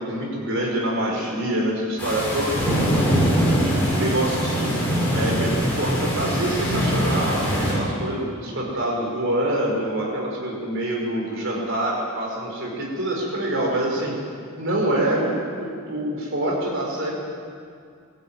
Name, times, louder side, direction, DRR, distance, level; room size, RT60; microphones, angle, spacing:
voice 1, 0.1-2.5 3.1-4.7 5.1-14.2 14.6-15.3 15.6-17.1, right 1 dB, 60° right, -2 dB, 5.3 m, -26 dB
sound 1, 2.0-7.7, equal, 10° left, 7.3 m, -22 dB
22.0 x 14.0 x 9.2 m, 2.2 s
head